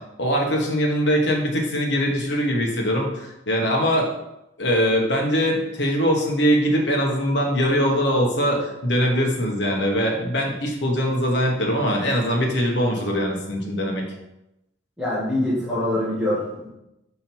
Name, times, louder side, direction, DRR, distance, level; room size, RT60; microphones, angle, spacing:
voice 1, 0.2-4.1 4.6-14.0, equal, 70° left, 0 dB, 1.3 m, -22 dB
voice 2, 15.0-16.7, left 1 dB, 5° right, -11 dB, 1.8 m, -24 dB
5.8 x 3.7 x 4.4 m, 0.90 s
head